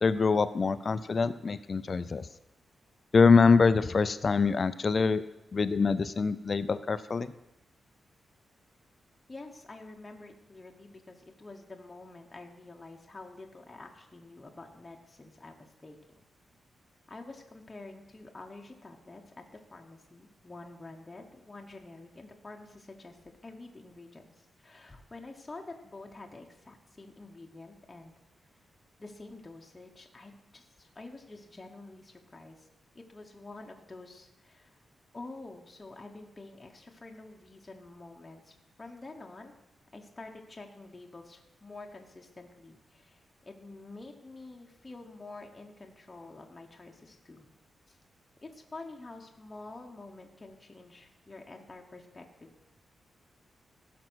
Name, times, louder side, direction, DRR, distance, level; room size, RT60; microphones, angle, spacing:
voice 1, 0.0-2.3 3.1-5.2 5.5-7.3, left 4 dB, 35° left, 14 dB, 0.4 m, -24 dB
voice 2, 9.3-16.0 17.1-28.1 29.0-32.7 32.9-34.8 35.1-39.5 39.9-47.5 47.9-48.0 48.4-52.5, left 2 dB, 15° left, 1 dB, 0.9 m, -48 dB
15.0 x 6.0 x 6.1 m, 0.97 s
wide cardioid pair, 170°, 0 cm